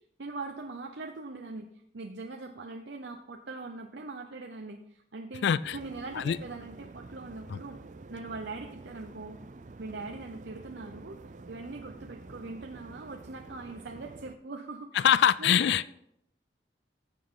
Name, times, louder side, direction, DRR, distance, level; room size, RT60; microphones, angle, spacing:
voice 1, 0.2-1.7 1.9-7.8 8.1-9.4 9.8-15.0 15.4-15.8, right 3 dB, 90° right, 3 dB, 0.8 m, -41 dB
voice 2, 5.4-5.8 6.1-6.4 7.5-7.6 14.9-15.9, left 9 dB, 85° left, 18 dB, 0.3 m, -24 dB
sound 1, 5.6-14.4, right 3 dB, 45° right, 0.4 m, -48 dB
14.5 x 7.7 x 3.9 m, 0.73 s
head